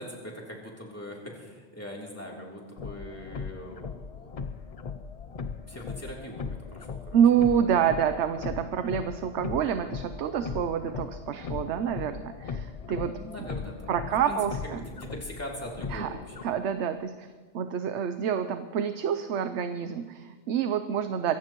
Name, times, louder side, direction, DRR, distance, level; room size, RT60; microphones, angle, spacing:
voice 1, 0.0-4.3 5.7-7.2 11.3-11.9 13.0-16.4, equal, 10° left, -3 dB, 3.1 m, -42 dB
sound 1, 2.8-16.4, left 5 dB, 45° left, 0.5 m, -38 dB
voice 2, 7.1-13.1 13.9-14.8 15.9-17.3 17.5-21.3, right 8 dB, 75° right, 9 dB, 1.0 m, -27 dB
24.5 x 15.5 x 3.0 m, 1.5 s
omnidirectional pair, 1.2 m